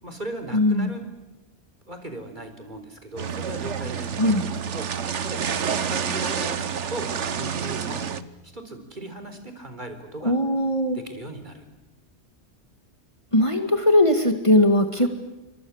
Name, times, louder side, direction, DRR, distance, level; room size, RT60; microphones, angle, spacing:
voice 1, 0.0-1.0 1.9-4.9 5.2-6.6 6.9-8.0 8.4-10.4 10.9-11.7 14.9-15.1, right 1 dB, 40° right, 7 dB, 4.3 m, -37 dB
voice 2, 0.5-0.9 4.2-4.5 10.2-11.0 13.3-15.1, left 1 dB, 25° left, 6 dB, 2.4 m, -19 dB
sound 1, 3.2-8.2, right 7 dB, 85° right, 1.5 m, -28 dB
29.0 x 25.0 x 7.4 m, 1.0 s
omnidirectional pair, 1.2 m